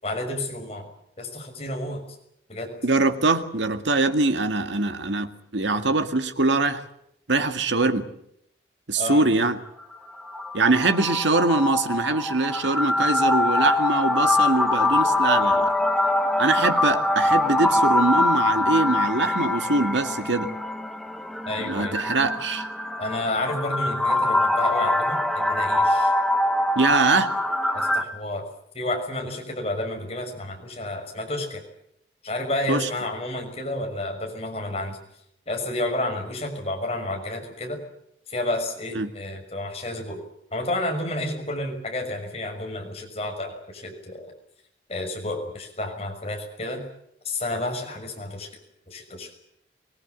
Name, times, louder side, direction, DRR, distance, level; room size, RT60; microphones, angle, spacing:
voice 1, 0.0-0.9 1.2-2.0 2.5-2.7 9.0-9.3 21.5-22.0 23.0-26.1 27.7-28.4 28.7-31.6 32.2-35.0 35.5-37.8 38.3-40.2 40.5-44.3 44.9-46.8 47.2-48.5 48.9-49.3, left 1 dB, 35° left, 2 dB, 6.4 m, -30 dB
voice 2, 2.8-6.8 7.3-8.1 8.9-9.6 10.5-15.7 16.4-20.5 21.6-22.7 26.8-27.3 32.7-32.9 39.0-39.1, right 3 dB, 80° right, 7 dB, 2.1 m, -23 dB
sound 1, 9.7-28.0, left 2 dB, ahead, 1.1 m, -23 dB
24.0 x 22.5 x 8.3 m, 0.75 s
head